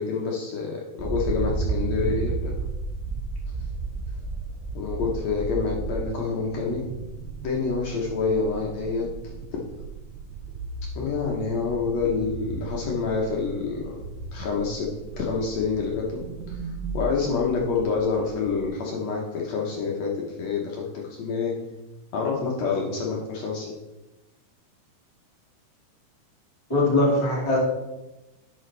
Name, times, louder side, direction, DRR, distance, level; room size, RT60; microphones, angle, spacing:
voice 1, 0.0-2.5 4.8-6.8 7.4-9.6 11.0-14.9 15.2-16.2 16.5-16.6 16.9-20.1 20.4-21.5 22.1-23.7, left 5 dB, 70° left, -2 dB, 2.0 m, -27 dB
sound 1, 1.0-6.0, right 4 dB, 20° right, 1.0 m, -30 dB
sound 2, 6.3-18.7, right 4 dB, 75° right, 1.9 m, -38 dB
voice 2, 26.7-27.6, left 2 dB, 10° left, -5 dB, 1.5 m, -21 dB
11.0 x 5.0 x 3.2 m, 1.0 s
omnidirectional pair, 3.6 m